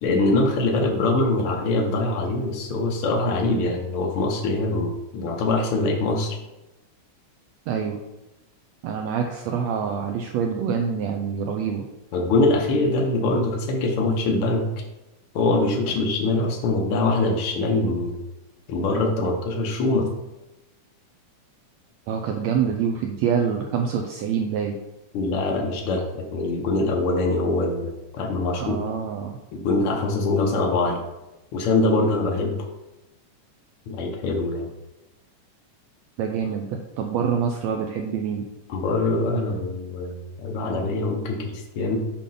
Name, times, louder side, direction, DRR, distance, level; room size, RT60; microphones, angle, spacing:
voice 1, 0.0-6.4 12.1-14.7 15.3-18.2 18.7-20.1 25.1-28.8 29.5-31.0 31.5-32.6 33.9-34.7 38.7-42.0, left 2 dB, 85° left, 0 dB, 1.2 m, -23 dB
voice 2, 7.7-8.0 8.8-11.9 22.1-24.8 28.6-29.4 36.2-38.4, right 7 dB, 90° right, 3 dB, 1.5 m, -26 dB
6.9 x 5.2 x 3.8 m, 0.98 s
omnidirectional pair, 3.7 m